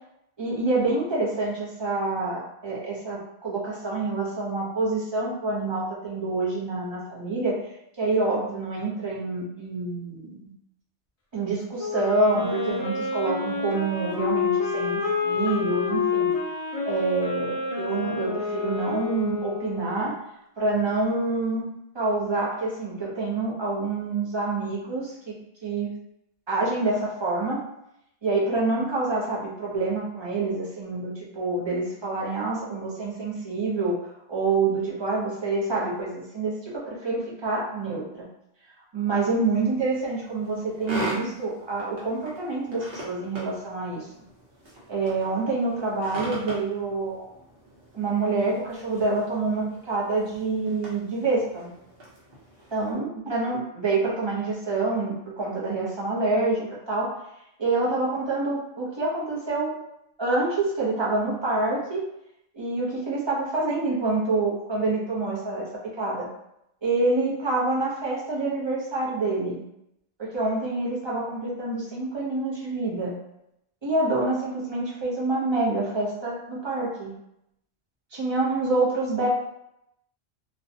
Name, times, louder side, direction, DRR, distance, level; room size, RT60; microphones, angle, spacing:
voice 1, 0.4-7.6 8.0-10.5 11.3-16.3 16.8-20.2 20.6-21.7 21.9-25.4 25.6-25.9 26.5-27.6 28.2-34.0 34.3-38.3 38.9-44.0 44.9-47.3 47.9-51.7 52.7-57.1 57.6-59.7 60.2-62.1 62.5-66.3 66.8-69.6 70.2-73.2 73.8-77.1 78.1-79.3, right 3 dB, 35° right, -5 dB, 0.5 m, -27 dB
Wind instrument woodwind instrument, 11.8-20.1, left 5 dB, 60° left, 0.4 m, -28 dB
sound 1, 39.2-52.9, right 1 dB, 60° right, 1.0 m, -41 dB
2.6 x 2.1 x 2.6 m, 0.81 s
omnidirectional pair, 1.2 m